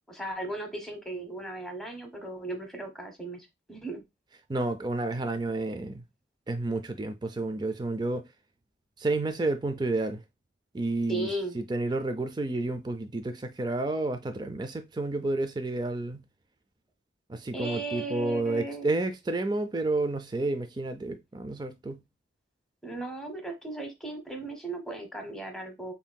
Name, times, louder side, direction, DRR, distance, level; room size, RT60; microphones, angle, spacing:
voice 1, 0.1-4.0 11.1-11.6 17.5-18.9 22.8-25.9, right 2 dB, ahead, 0.9 m, -36 dB
voice 2, 4.5-6.0 6.5-8.3 9.0-10.2 10.7-11.3 11.5-16.2 17.3-22.0, right 2 dB, 25° right, 0.4 m, -30 dB
5.5 x 2.7 x 2.2 m
head